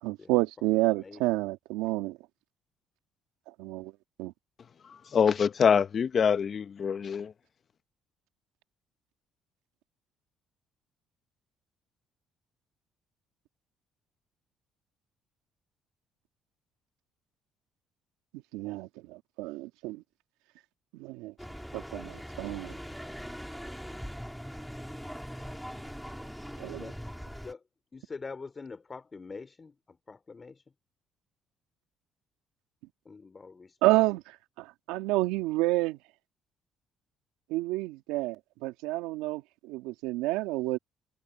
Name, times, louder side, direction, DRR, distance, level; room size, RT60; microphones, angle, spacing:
voice 1, 0.0-2.2 3.6-3.9 4.2-4.3 18.3-20.0 20.9-21.3 21.7-22.8 26.6-26.9 33.8-36.0 37.5-40.8, right 19 dB, 85° right, 2.0 m, -30 dB
voice 2, 5.1-7.3, left 7 dB, 50° left, 0.9 m, -24 dB
sound 1, 21.4-27.5, equal, ahead, 4.5 m, -41 dB
voice 3, 27.9-30.6 33.0-33.8, left 4 dB, 30° left, 3.5 m, -44 dB
supercardioid pair, 70°, 0 cm